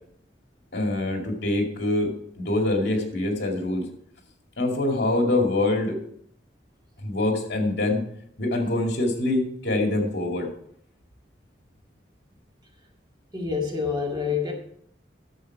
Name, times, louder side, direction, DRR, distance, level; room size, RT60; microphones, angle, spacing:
voice 1, 0.7-3.9 4.6-6.0 7.0-8.0 8.4-10.5 14.1-14.2, left 2 dB, 65° left, 2 dB, 2.2 m, -25 dB
voice 2, 13.3-14.5, left 5 dB, 25° right, 0 dB, 2.1 m, -27 dB
11.0 x 7.3 x 4.6 m, 0.68 s
head